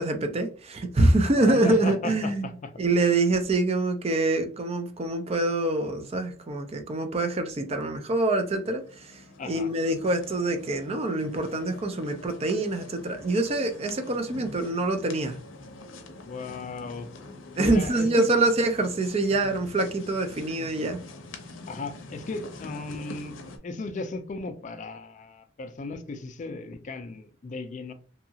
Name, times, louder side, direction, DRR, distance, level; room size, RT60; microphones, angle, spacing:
voice 1, 0.0-2.5 2.8-15.4 17.6-21.0, right 2 dB, 30° right, 0.4 m, -25 dB
voice 2, 1.4-2.7 9.4-9.7 16.2-17.1 17.6-18.3 21.7-23.3 23.6-27.9, left 3 dB, 40° left, 0.4 m, -36 dB
sound 1, 7.8-23.6, left 2 dB, 85° left, 0.6 m, -45 dB
2.7 x 2.4 x 2.7 m
head